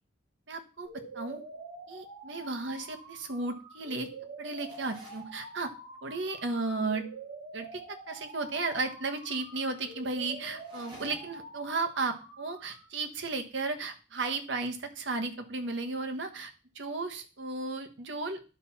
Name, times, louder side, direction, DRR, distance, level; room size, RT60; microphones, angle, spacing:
voice 1, 0.5-1.4 1.9-4.1 4.4-5.7 6.0-7.1 7.5-18.4, right 3 dB, 75° right, 6 dB, 1.2 m, -34 dB
sound 1, 0.8-12.8, right 2 dB, 55° right, 4.1 m, -47 dB
sound 2, 4.7-5.3 10.5-11.5, right 1 dB, 25° right, 3.0 m, -51 dB
10.5 x 4.2 x 5.7 m, 0.34 s
head